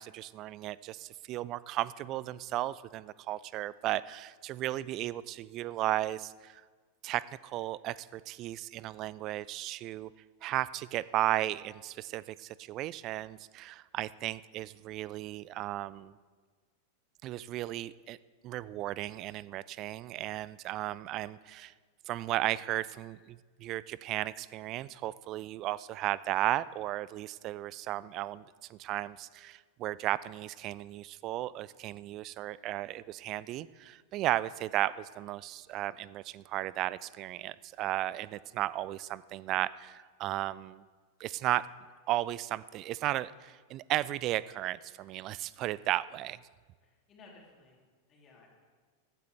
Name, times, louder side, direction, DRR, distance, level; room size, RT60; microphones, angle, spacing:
voice 1, 0.0-6.6 7.0-10.1 10.4-16.1 17.2-18.2 18.4-21.7 22.1-28.4 28.7-40.8 41.2-41.7 42.1-46.4, right 15 dB, 35° right, 19 dB, 0.3 m, -35 dB
voice 2, 46.8-47.8 48.1-48.6, left 3 dB, 30° left, -3 dB, 3.3 m, -57 dB
15.0 x 12.0 x 3.4 m, 1.5 s
figure-of-eight pair, 90°, 0 cm